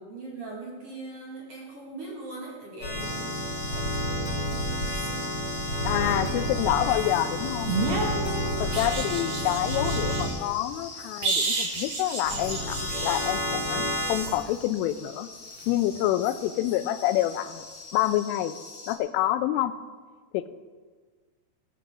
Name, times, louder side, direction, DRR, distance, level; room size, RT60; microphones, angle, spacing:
voice 1, 0.0-6.5 8.4-8.9, right 2 dB, 50° right, -4 dB, 1.9 m, -42 dB
sound 1, 2.8-10.3 12.2-14.3, equal, 30° left, 4.1 m, -30 dB
sound 2, 3.0-19.0, left 4 dB, 60° left, 2.1 m, -43 dB
voice 2, 5.8-7.7 8.6-15.3 15.7-17.7 17.9-18.6 18.9-19.7 20.3-20.5, left 13 dB, 85° left, 10 dB, 3.0 m, -27 dB
sound 3, 7.6-10.3 11.2-13.3 15.9-16.1, right 3 dB, 75° right, 1.5 m, -30 dB
19.0 x 6.7 x 6.2 m, 1.5 s
omnidirectional pair, 5.8 m